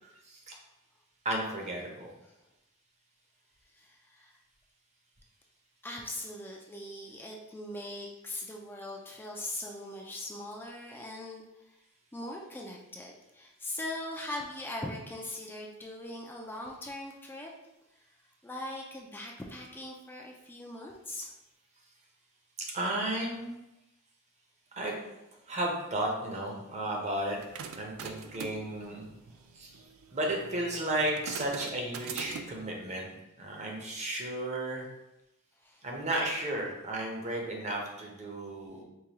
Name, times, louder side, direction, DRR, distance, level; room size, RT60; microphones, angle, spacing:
voice 1, 1.2-2.1 22.6-23.6 24.8-25.0 25.5-27.4 27.8-29.1 29.6-29.7 30.1-33.1 33.4-34.9 35.8-38.8, right 1 dB, 35° right, 0 dB, 0.7 m, -33 dB
voice 2, 3.7-4.4 5.8-11.5 12.1-17.5 18.4-21.3 35.6-35.8, left 1 dB, 10° left, -1 dB, 0.3 m, -40 dB
old recorder, 27.2-32.7, right 6 dB, 70° right, 0.3 m, -43 dB
4.7 x 2.3 x 2.8 m, 0.92 s
head